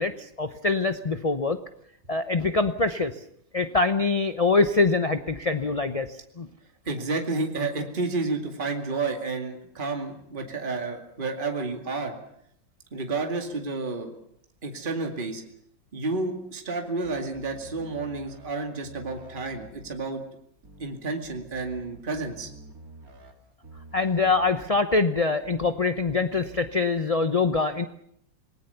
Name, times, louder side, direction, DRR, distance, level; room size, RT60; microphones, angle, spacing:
voice 1, 0.0-1.6 2.1-3.2 3.5-6.1 6.4-6.5 23.9-27.8, left 3 dB, 40° left, 9 dB, 0.5 m, -24 dB
voice 2, 6.9-12.1 12.9-14.1 14.6-15.4 15.9-20.2 20.8-22.5, right 3 dB, 25° right, 4 dB, 2.4 m, -30 dB
sound 1, 17.0-18.5 18.8-20.0 20.6-20.9 21.2-23.3 23.6-24.8 25.4-25.7 26.0-26.6, right 1 dB, 50° right, 3.3 m, -48 dB
27.5 x 19.5 x 6.9 m, 0.72 s
omnidirectional pair, 2.0 m